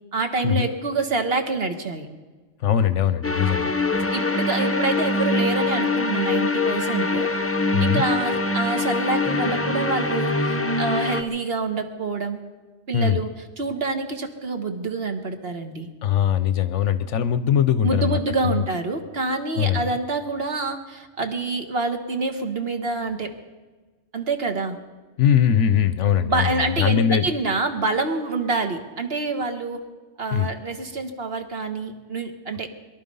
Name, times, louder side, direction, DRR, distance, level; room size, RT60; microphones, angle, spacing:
voice 1, 0.1-2.1 4.1-7.3 7.8-12.4 12.9-13.3 13.6-15.9 17.8-23.3 24.1-24.8 26.2-29.8 30.2-32.7, right 3 dB, 50° right, 6 dB, 1.5 m, -26 dB
voice 2, 2.6-3.7 7.7-8.0 12.9-13.2 16.0-18.6 19.5-19.8 25.2-27.3 30.3-30.5, left 9 dB, 65° left, 13 dB, 0.9 m, -21 dB
sound 1, 3.2-11.2, left 2 dB, 15° left, 0.5 m, -23 dB
22.5 x 12.0 x 5.4 m, 1.3 s
omnidirectional pair, 1.4 m